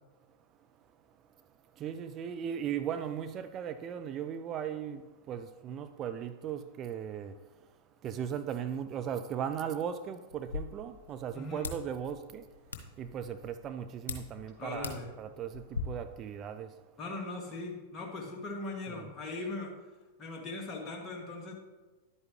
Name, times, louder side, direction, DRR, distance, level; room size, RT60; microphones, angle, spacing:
voice 1, 1.8-7.4 8.0-12.5 13.0-16.7 18.9-19.1, right 8 dB, 35° right, 0.5 m, -37 dB
sound 1, 10.3-15.8, left 5 dB, 75° left, 1.2 m, -43 dB
voice 2, 11.3-11.7 14.6-15.1 17.0-19.7 20.2-21.5, left 2 dB, 25° left, 2.3 m, -39 dB
11.0 x 8.3 x 3.2 m
hypercardioid pair, 100°, 0 cm